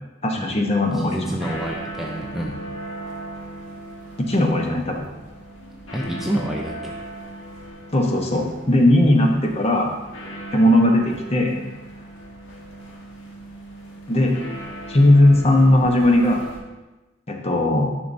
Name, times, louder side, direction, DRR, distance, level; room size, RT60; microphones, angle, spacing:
voice 1, 0.2-1.4 4.2-5.1 7.9-9.9 10.5-11.6 14.1-14.4 14.9-16.4 17.3-18.0, left 1 dB, 30° left, 2 dB, 0.9 m, -18 dB
sound 1, 0.8-16.6, right 1 dB, 75° left, 1.5 m, -38 dB
voice 2, 0.9-2.6 5.9-7.0, right 1 dB, ahead, -1 dB, 0.5 m, -28 dB
10.0 x 5.4 x 2.6 m, 1.1 s
head